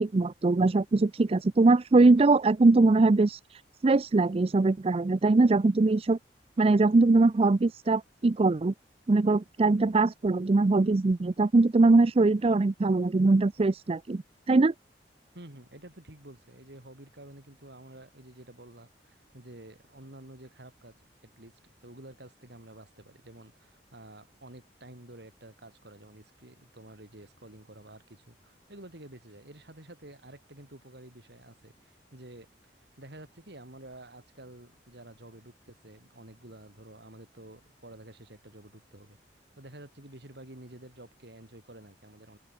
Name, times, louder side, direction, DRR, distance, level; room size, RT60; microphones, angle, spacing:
voice 1, 0.0-6.2 6.6-8.7 9.1-14.2 14.5-14.7, right 3 dB, 35° right, 0.4 m, -22 dB
voice 2, 15.3-21.0 21.2-39.2 39.6-42.4, right 1 dB, 70° right, 3.9 m, -50 dB
head